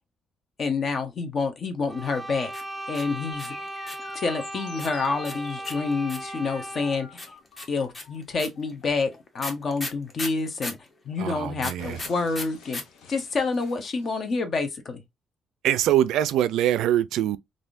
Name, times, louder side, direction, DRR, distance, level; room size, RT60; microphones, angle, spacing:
voice 1, 0.6-2.5 2.9-3.5 4.1-7.3 7.7-10.8 11.0-12.8 13.1-15.0, left 4 dB, 50° left, 0.7 m, -28 dB
sound 1, 1.9-7.2, right 1 dB, 5° left, 0.4 m, -37 dB
sound 2, 2.5-4.1 4.8-6.4 7.2-10.9 11.6-12.8 13.1-13.2 13.4-13.9, left 2 dB, 30° left, 1.0 m, -36 dB
sound 3, 3.3-11.3 11.8-14.3, left 6 dB, 85° left, 0.6 m, -49 dB
voice 2, 11.2-12.0 15.6-17.4, right 12 dB, 85° right, 0.3 m, -23 dB
3.4 x 2.5 x 2.5 m
cardioid pair, 90°, 0 cm